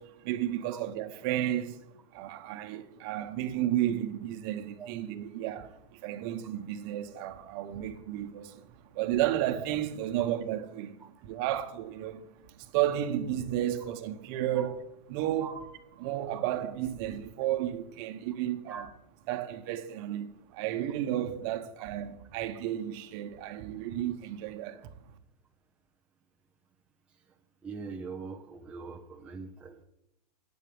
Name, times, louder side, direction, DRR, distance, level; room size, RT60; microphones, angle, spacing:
voice 1, 0.0-1.8 2.1-14.8 15.1-15.6 16.0-18.9 19.3-24.9, right 12 dB, 35° right, 1.1 m, -33 dB
voice 2, 27.6-29.8, right 5 dB, 5° right, 0.7 m, -42 dB
9.1 x 8.4 x 8.5 m
supercardioid pair, 160°, 21 cm